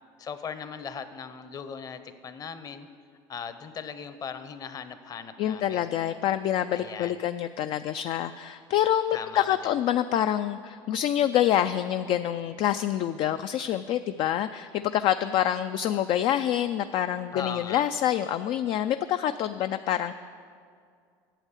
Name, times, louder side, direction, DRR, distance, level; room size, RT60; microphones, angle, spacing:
voice 1, 0.2-2.9 3.3-5.9 6.7-7.2 9.1-9.7 17.3-17.8, left 6 dB, 35° left, 11 dB, 0.8 m, -39 dB
voice 2, 5.4-20.1, left 11 dB, 55° left, 10 dB, 0.3 m, -26 dB
9.1 x 7.3 x 8.2 m, 2.2 s
supercardioid pair, 100°, 10 cm